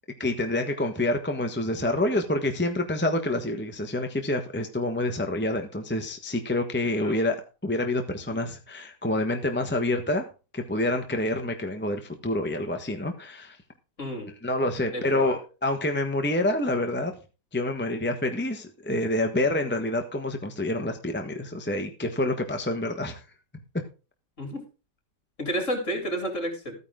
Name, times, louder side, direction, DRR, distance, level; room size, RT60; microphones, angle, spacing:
voice 1, 0.2-10.3 10.5-13.6 14.4-17.1 17.5-23.2 23.7-23.8, left 1 dB, 5° left, 4 dB, 1.1 m, -27 dB
voice 2, 14.0-14.3 14.9-15.3 24.4-24.6 25.4-26.7, equal, 45° left, 3 dB, 4.3 m, -31 dB
14.5 x 9.6 x 3.7 m, 0.32 s
omnidirectional pair, 1.8 m